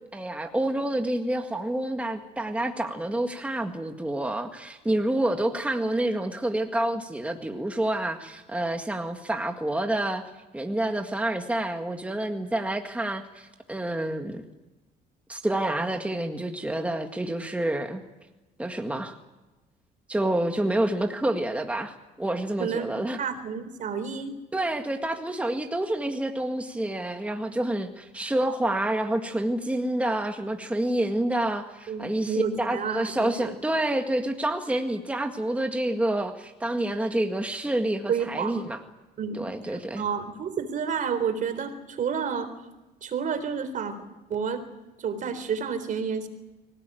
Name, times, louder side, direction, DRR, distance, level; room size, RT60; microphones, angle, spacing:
voice 1, 0.0-10.2 10.5-14.4 15.3-18.0 18.6-19.2 20.1-23.2 24.5-38.8 39.3-40.0, right 1 dB, 5° right, 5 dB, 1.9 m, -28 dB
voice 2, 22.6-22.9 23.2-24.4 31.9-33.5 38.1-38.6 39.2-42.5 43.0-44.0 44.3-44.6 45.0-46.3, right 6 dB, 50° right, 11 dB, 3.8 m, -30 dB
24.5 x 17.5 x 9.2 m, 1.1 s
cardioid pair, 110°, 17 cm